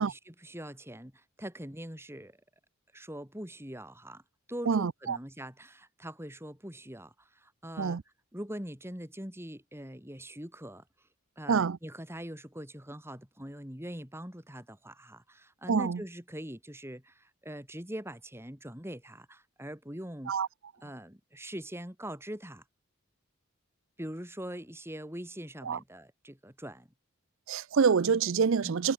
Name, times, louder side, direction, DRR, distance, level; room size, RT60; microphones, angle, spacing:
voice 1, 0.0-2.4 2.9-4.2 4.5-8.0 8.3-11.1 11.3-20.3 20.8-22.6 24.0-26.9 28.6-28.8, equal, 10° right, 5.3 m, -43 dB
voice 2, 4.7-5.2 7.8-8.0 11.5-11.8 15.7-16.0 20.3-20.5 25.7-25.8 27.5-28.9, right 6 dB, 60° right, 0.5 m, -26 dB
head